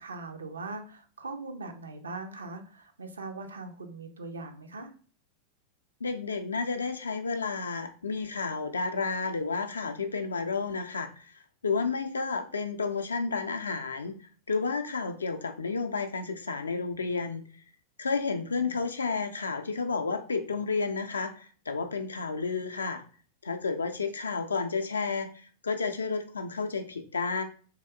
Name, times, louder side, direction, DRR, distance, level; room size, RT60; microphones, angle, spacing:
voice 1, 0.0-4.9, right 3 dB, 75° right, 6 dB, 0.4 m, -40 dB
voice 2, 6.0-14.2 14.5-17.4 18.0-23.0 23.4-27.4, left 4 dB, 75° left, 7 dB, 0.3 m, -31 dB
3.4 x 2.7 x 2.2 m, 0.41 s
figure-of-eight pair, 90°, 0 cm